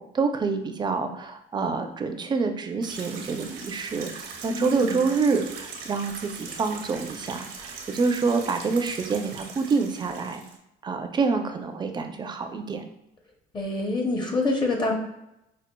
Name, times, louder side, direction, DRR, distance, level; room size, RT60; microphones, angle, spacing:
voice 1, 0.0-10.4 10.8-12.9, right 4 dB, 25° right, 6 dB, 0.4 m, -27 dB
sound 1, 2.8-10.6, right 5 dB, 75° right, 0.7 m, -40 dB
voice 2, 4.5-5.0 13.5-14.9, left 2 dB, 25° left, 1 dB, 0.6 m, -26 dB
5.0 x 2.4 x 2.2 m, 0.86 s
cardioid pair, 110°, 17 cm